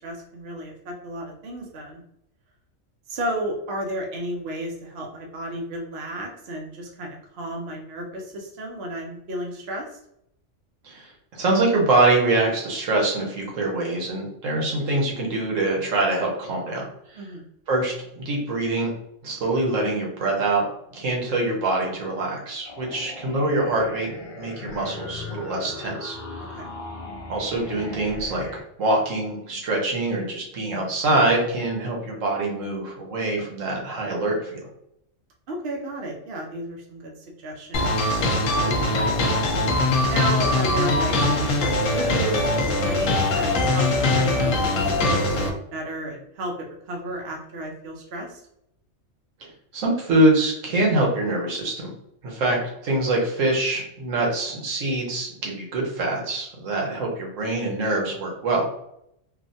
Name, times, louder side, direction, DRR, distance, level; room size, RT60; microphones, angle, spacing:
voice 1, 0.0-2.0 3.1-10.0 17.1-17.4 26.4-26.7 35.5-37.1 37.4-39.2 40.1-48.4, right 1 dB, 60° right, 0 dB, 0.9 m, -33 dB
voice 2, 10.8-16.8 17.7-18.9 19.2-20.6 20.9-26.2 27.3-28.5 28.8-34.7 49.4-51.9 52.2-58.7, right 2 dB, 80° right, -1 dB, 1.3 m, -24 dB
sound 1, 22.7-28.6, left 3 dB, 40° left, 0.5 m, -38 dB
sound 2, 37.7-45.5, left 2 dB, 80° left, 1.0 m, -22 dB
3.1 x 2.2 x 2.6 m, 0.76 s
omnidirectional pair, 1.3 m